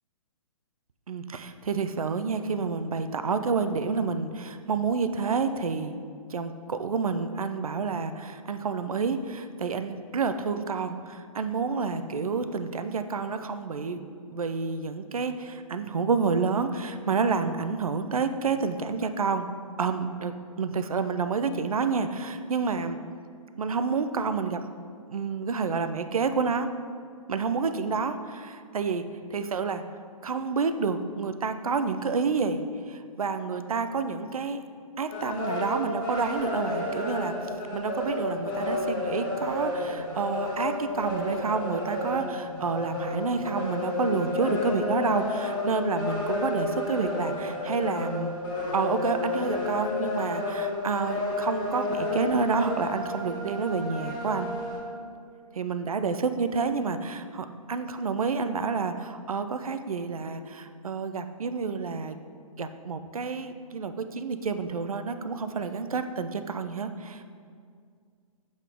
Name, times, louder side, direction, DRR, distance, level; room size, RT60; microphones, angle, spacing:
voice 1, 1.1-6.0 6.3-14.0 14.3-19.5 19.8-23.0 23.6-24.6 25.1-26.7 27.3-29.8 30.2-34.6 35.0-48.3 48.7-54.5 55.6-62.2 62.6-67.2, right 5 dB, 70° right, 9 dB, 0.4 m, -29 dB
sound 1, 35.1-54.8, left 2 dB, 40° left, 1.3 m, -31 dB
7.1 x 3.8 x 3.5 m, 2.1 s
figure-of-eight pair, 125°, 19 cm